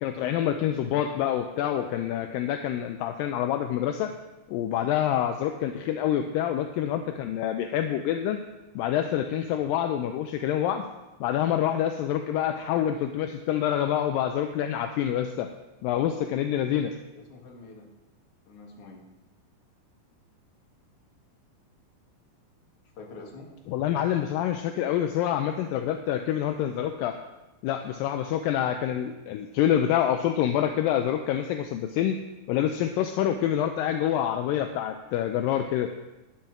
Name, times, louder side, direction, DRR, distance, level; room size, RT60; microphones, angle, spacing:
voice 1, 0.0-4.1 4.5-8.4 8.8-10.8 11.2-15.5 15.8-16.9 23.7-27.2 27.6-32.2 32.5-35.9, left 10 dB, 80° left, 7 dB, 2.1 m, -27 dB
voice 2, 17.1-17.9 18.5-19.0 22.9-23.5, left 3 dB, 45° left, 0 dB, 2.3 m, -46 dB
10.5 x 7.1 x 6.0 m, 1.0 s
omnidirectional pair, 4.3 m